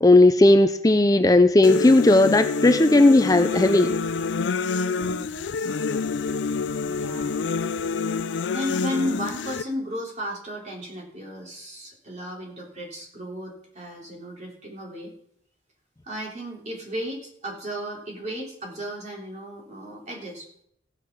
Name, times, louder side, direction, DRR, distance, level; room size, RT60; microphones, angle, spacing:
voice 1, 0.0-3.9, left 2 dB, 20° left, 8 dB, 0.5 m, -16 dB
sound 1, 1.6-9.6, left 4 dB, 90° left, 0.5 m, -27 dB
voice 2, 5.0-5.6 6.9-7.4 8.5-15.1 16.0-20.6, equal, 40° right, -1 dB, 3.5 m, -34 dB
15.5 x 6.6 x 6.0 m, 0.70 s
head